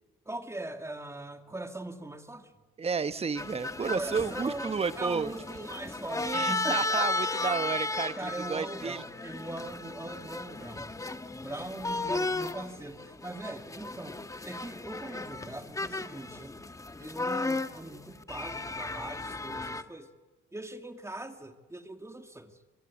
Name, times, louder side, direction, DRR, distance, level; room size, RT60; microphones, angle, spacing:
voice 1, 0.3-2.5 3.9-7.1 8.2-10.9 11.3-14.2 14.4-16.6 17.0-20.1 20.5-22.6, right 2 dB, 15° right, 7 dB, 2.0 m, -41 dB
voice 2, 2.8-5.3 6.2-9.0, right 5 dB, 30° right, 13 dB, 1.1 m, -31 dB
sound 1, 3.4-19.8, left 2 dB, 15° left, 1.2 m, -35 dB
25.0 x 22.5 x 8.4 m, 1.3 s
cardioid pair, 90°, 20 cm